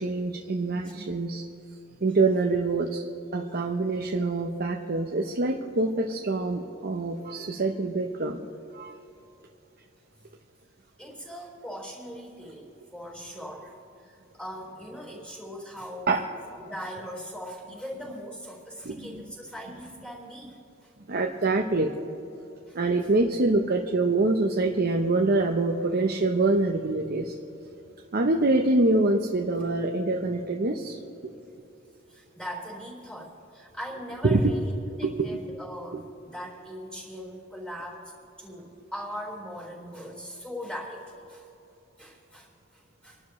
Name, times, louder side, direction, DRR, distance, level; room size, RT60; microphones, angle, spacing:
voice 1, 0.0-1.4 2.0-3.0 3.3-8.4 8.7-9.0 16.1-16.2 18.8-19.2 21.1-21.9 22.7-27.3 28.1-31.3 34.2-34.5 35.0-35.4 35.9-36.0, right 2 dB, 50° right, 2 dB, 0.8 m, -25 dB
voice 2, 11.0-16.1 16.6-20.9 22.7-22.8 32.1-34.7 35.0-38.1 38.4-41.4 42.0-43.2, equal, 5° left, -3 dB, 4.0 m, -40 dB
27.0 x 12.0 x 3.2 m, 3.0 s
head